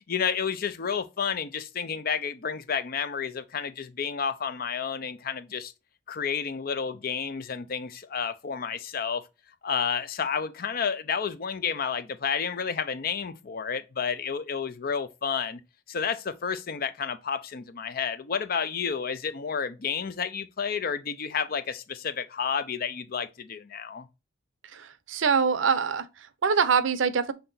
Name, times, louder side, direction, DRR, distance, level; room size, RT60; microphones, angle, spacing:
voice 1, 0.1-5.7 6.1-9.2 9.6-15.6 15.9-24.1, left 6 dB, 50° left, 0.5 m, -30 dB
voice 2, 24.7-27.3, right 6 dB, 80° right, 0.6 m, -24 dB
5.6 x 3.3 x 2.5 m
head